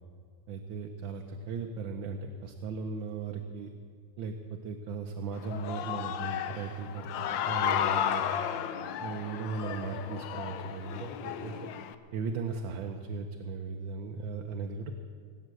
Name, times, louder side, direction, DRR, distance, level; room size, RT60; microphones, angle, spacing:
voice 1, 0.5-3.7 4.2-8.4 9.0-11.7 12.1-14.9, right 4 dB, 90° right, 4 dB, 1.6 m, -37 dB
Human voice / Cheering, 5.3-11.9, left 10 dB, 85° left, 1.4 m, -33 dB
18.5 x 8.7 x 7.8 m, 2.1 s
omnidirectional pair, 2.0 m